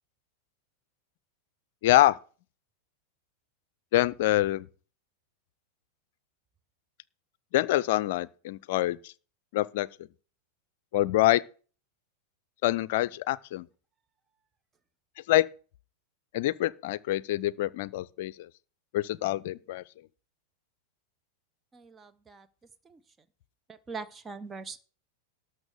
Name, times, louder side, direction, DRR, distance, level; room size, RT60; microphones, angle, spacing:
voice 1, 1.8-2.2 3.9-4.7 7.5-9.1 9.5-9.9 10.9-11.4 12.6-13.7 15.3-15.5 16.3-18.5 18.9-19.8, left 16 dB, 50° left, 0.5 m, -25 dB
voice 2, 21.7-22.5 22.8-23.0 23.7-24.8, right 4 dB, 15° right, 0.7 m, -42 dB
12.5 x 6.6 x 6.7 m
figure-of-eight pair, 90°, 0 cm